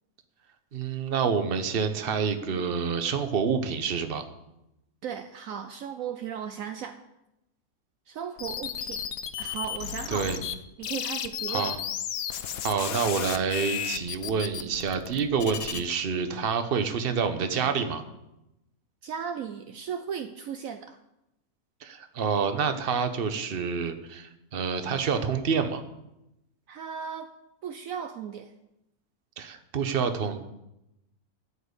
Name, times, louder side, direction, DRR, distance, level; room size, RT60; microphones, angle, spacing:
voice 1, 0.7-4.2 10.1-10.4 11.5-11.8 12.6-18.0 21.8-25.8 29.4-30.4, right 6 dB, 40° right, 9 dB, 1.0 m, -28 dB
voice 2, 5.0-7.0 8.1-9.0 9.4-10.3 10.8-11.8 19.0-21.0 26.7-27.3 27.6-28.5, right 7 dB, 70° right, 8 dB, 1.0 m, -36 dB
sound 1, 8.4-10.6 10.8-15.8, left 9 dB, 70° left, 1.1 m, -33 dB
12.5 x 5.3 x 8.1 m, 0.88 s
omnidirectional pair, 1.6 m